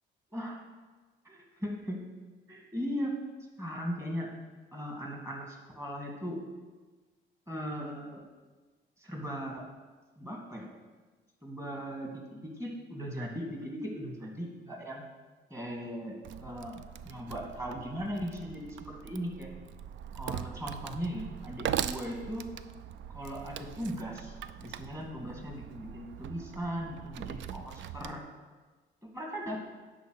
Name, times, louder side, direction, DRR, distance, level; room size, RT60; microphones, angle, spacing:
voice 1, 0.3-0.6 1.2-2.0 2.5-3.2 3.6-4.3 4.7-6.4 7.5-8.2 9.0-9.6 10.2-10.7 11.4-15.0 15.5-16.8 17.0-19.5 20.1-22.5 23.1-28.2 29.1-29.6, equal, 15° right, 0 dB, 2.2 m, -38 dB
Wood, 16.2-28.2, right 10 dB, 75° right, 0.4 m, -41 dB
10.0 x 3.9 x 6.5 m, 1.3 s
cardioid pair, 90°, 20 cm